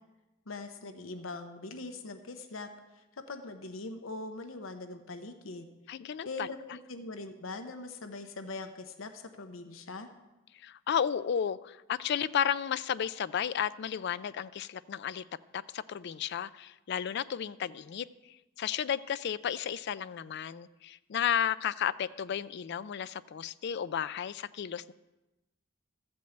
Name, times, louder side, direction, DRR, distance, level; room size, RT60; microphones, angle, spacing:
voice 1, 0.5-5.7 6.2-10.1, left 3 dB, 85° left, 8 dB, 0.8 m, -42 dB
voice 2, 5.9-6.5 10.6-15.2 15.5-18.1 18.6-24.9, left 8 dB, 60° left, 17 dB, 0.4 m, -33 dB
13.5 x 5.3 x 7.9 m, 1.1 s
head